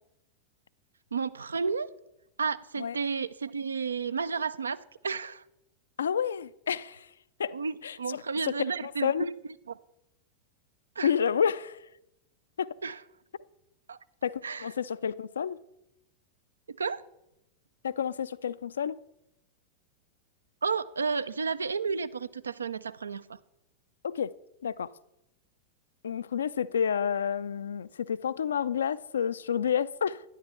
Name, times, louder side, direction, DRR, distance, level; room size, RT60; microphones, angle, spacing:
voice 1, 1.1-1.9 2.4-4.8 5.0-5.4 7.5-9.1 9.7-9.8 11.0-11.1 12.8-13.0 13.9-14.0 14.4-14.7 16.7-17.0 20.6-23.4, right 5 dB, 75° right, 0.4 m, -32 dB
voice 2, 6.0-7.1 7.4-7.6 7.8-8.6 8.8-9.3 11.0-11.9 12.6-12.8 14.2-15.6 17.8-19.0 24.0-24.3 24.6-24.9 26.0-30.2, left 7 dB, 70° left, 0.4 m, -30 dB
11.5 x 10.0 x 4.3 m
figure-of-eight pair, 90°, 0 cm